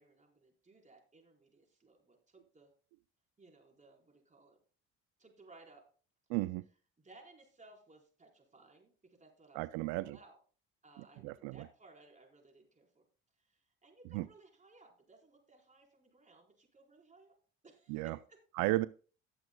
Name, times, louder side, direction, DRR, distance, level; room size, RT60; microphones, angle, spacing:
voice 1, 0.0-2.7 3.4-4.6 5.2-5.9 7.0-10.4 10.8-13.1 13.3-17.3 17.6-18.4, right 2 dB, 25° right, 1 dB, 4.4 m, -61 dB
voice 2, 6.3-6.7 9.5-10.2 11.2-11.6 14.1-14.3 17.9-18.2 18.6-18.9, right 19 dB, 85° right, 17 dB, 0.5 m, -34 dB
18.0 x 7.8 x 2.3 m, 0.39 s
supercardioid pair, 80°, 30 cm